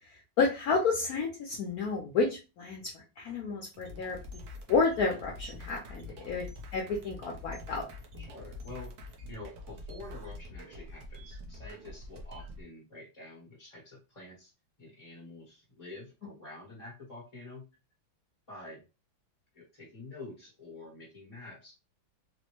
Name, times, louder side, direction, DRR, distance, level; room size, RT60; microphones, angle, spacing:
voice 1, 0.0-4.2 4.7-6.5 6.7-7.9, left 4 dB, 65° left, -1 dB, 0.9 m, -30 dB
sound 1, 3.7-12.6, left 2 dB, 65° right, 1.2 m, -45 dB
voice 2, 5.9-6.3 8.2-14.5 14.8-17.6 18.5-18.8 19.5-21.7, left 2 dB, 25° left, -6 dB, 1.0 m, -48 dB
3.9 x 2.1 x 2.9 m, 0.28 s
omnidirectional pair, 2.1 m